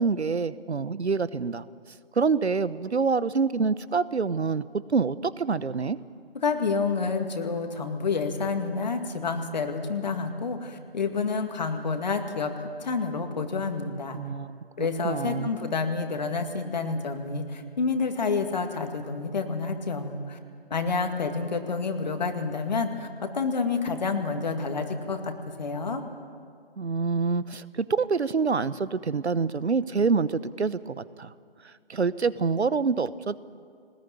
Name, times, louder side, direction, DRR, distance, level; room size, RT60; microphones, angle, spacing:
voice 1, 0.0-1.6 2.1-6.0 14.1-15.5 26.8-31.3 31.6-33.4, right 5 dB, 85° right, 17 dB, 1.0 m, -26 dB
voice 2, 6.4-14.2 14.8-20.4 20.7-26.0, left 4 dB, 40° left, 6 dB, 2.1 m, -29 dB
21.5 x 20.0 x 9.4 m, 2.2 s
figure-of-eight pair, 165°, 32 cm